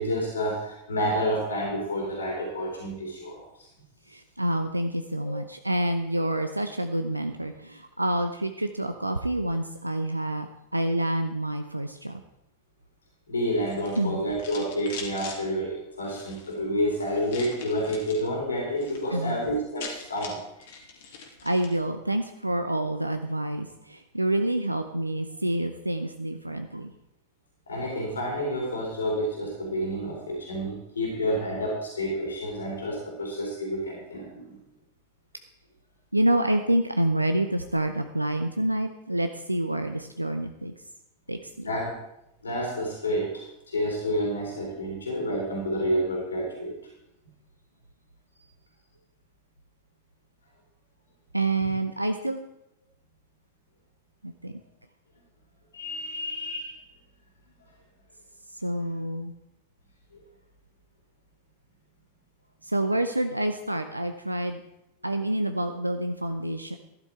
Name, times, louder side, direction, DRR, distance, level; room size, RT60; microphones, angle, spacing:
voice 1, 0.0-3.7 5.2-5.4 13.3-20.8 27.7-34.5 41.6-42.0 42.4-46.8 55.7-56.8, equal, 75° left, -1 dB, 3.3 m, -29 dB
voice 2, 4.1-12.2 14.0-14.2 19.1-19.4 21.1-26.9 36.1-40.7 41.3-41.7 51.3-52.4 54.2-54.6 58.5-59.3 62.6-64.6 65.0-66.8, right 1 dB, 85° right, 7 dB, 0.6 m, -28 dB
sound 1, 13.6-15.4 16.0-16.5 17.3-18.3 18.6-19.0 19.3-19.4 19.6-21.8, left 5 dB, 55° left, 2.3 m, -42 dB
12.5 x 11.0 x 4.5 m, 0.83 s
figure-of-eight pair, 90°, 0 cm